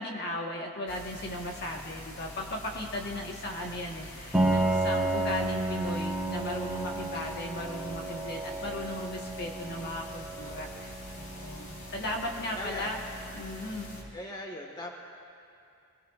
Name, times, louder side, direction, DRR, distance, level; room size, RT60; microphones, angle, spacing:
voice 1, 0.0-13.0 13.3-13.9, left 1 dB, 50° left, 0 dB, 1.4 m, -37 dB
sound 1, 0.9-14.0, left 1 dB, 75° left, 3.4 m, -45 dB
Piano, 4.3-13.9, right 2 dB, 5° right, 1.8 m, -32 dB
voice 2, 12.6-12.9 14.1-14.9, left 1 dB, 20° left, 0 dB, 1.6 m, -39 dB
26.5 x 19.5 x 2.5 m, 2.5 s
head